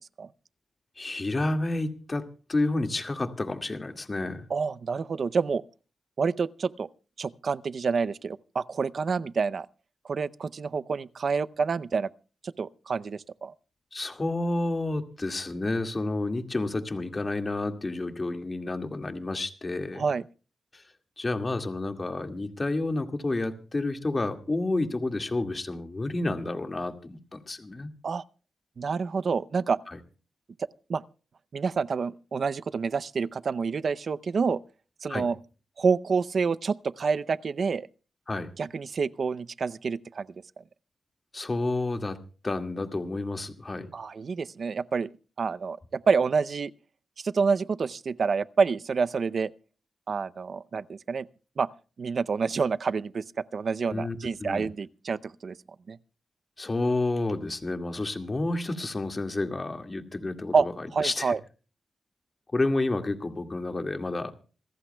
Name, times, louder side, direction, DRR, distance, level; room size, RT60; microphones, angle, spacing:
voice 1, 1.0-4.5 13.9-20.0 20.7-20.8 21.2-27.9 35.1-35.3 38.3-38.5 41.3-43.9 53.9-54.2 54.4-54.7 56.6-60.5 61.0-61.3 62.5-64.3, left 2 dB, 30° left, 2.0 m, -30 dB
voice 2, 4.5-5.6 6.2-6.9 7.2-9.7 10.0-12.1 12.4-13.5 19.9-20.2 28.0-28.2 28.8-29.8 30.9-31.0 31.5-34.6 35.0-35.4 35.8-37.9 38.6-40.3 43.9-45.1 45.4-46.7 47.2-49.5 50.1-51.3 51.6-51.7 52.0-53.2 53.5-55.6 55.9-56.0 60.5-60.7 60.9-61.4, right 5 dB, 60° right, 0.6 m, -28 dB
27.0 x 14.5 x 2.3 m
cardioid pair, 80°, 0 cm